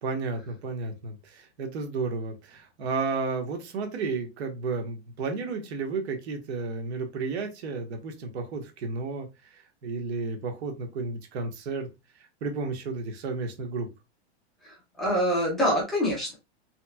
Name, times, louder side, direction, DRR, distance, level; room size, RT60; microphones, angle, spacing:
voice 1, 0.0-11.9 12.4-13.9, right 4 dB, 75° right, 4 dB, 1.1 m, -32 dB
voice 2, 14.6-16.3, equal, ahead, -5 dB, 0.4 m, -26 dB
3.3 x 3.0 x 2.2 m, 0.25 s
supercardioid pair, 180°, 33 cm